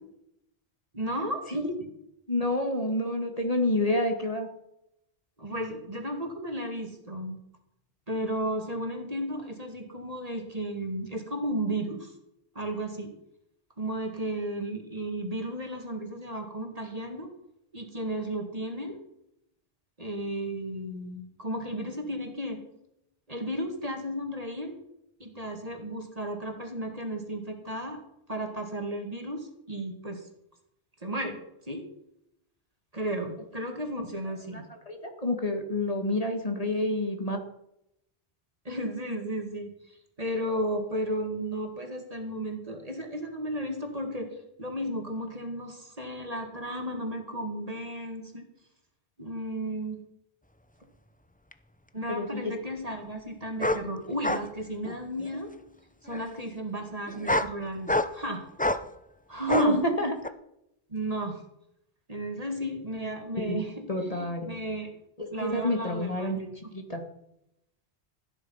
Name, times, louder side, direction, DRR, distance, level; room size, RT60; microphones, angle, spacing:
voice 1, 0.9-1.4 5.4-7.4 8.1-12.1 12.5-13.1 13.8-17.3 17.7-19.0 20.0-22.6 23.3-24.8 25.2-28.0 28.3-30.3 31.0-31.4 31.7-31.8 32.9-34.7 38.6-44.3 44.6-48.5 49.2-50.0 51.9-55.5 56.0-58.4 59.3-59.8 60.9-61.4 62.1-64.9 65.3-66.4, right 1 dB, 35° right, 4 dB, 2.4 m, -34 dB
voice 2, 2.3-4.5 34.9-37.4 52.1-52.5 59.4-60.1 63.5-63.6 63.9-64.5 65.2-66.5 66.7-67.0, left 1 dB, 35° left, 4 dB, 2.0 m, -28 dB
sound 1, 51.5-51.6 53.6-53.8 54.2-54.5 54.8-55.4 56.1-56.3 57.1-57.5 57.9-58.2 58.6-58.8 59.5-59.7 60.2-60.3, left 1 dB, 10° left, 0.6 m, -27 dB
16.0 x 10.0 x 5.7 m, 0.80 s
omnidirectional pair, 1.1 m